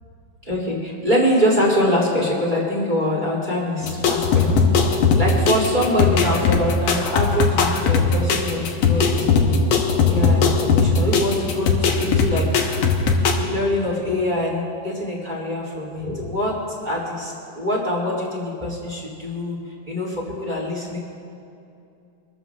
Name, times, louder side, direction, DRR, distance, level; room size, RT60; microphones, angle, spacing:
voice 1, 0.5-9.6 10.1-12.6 13.3-16.6 16.8-19.6 19.9-21.0, left 1 dB, 15° right, -5 dB, 2.7 m, -24 dB
sound 1, 3.8-13.3, left 5 dB, 65° left, 1.8 m, -19 dB
25.0 x 13.5 x 2.5 m, 2.6 s
omnidirectional pair, 3.7 m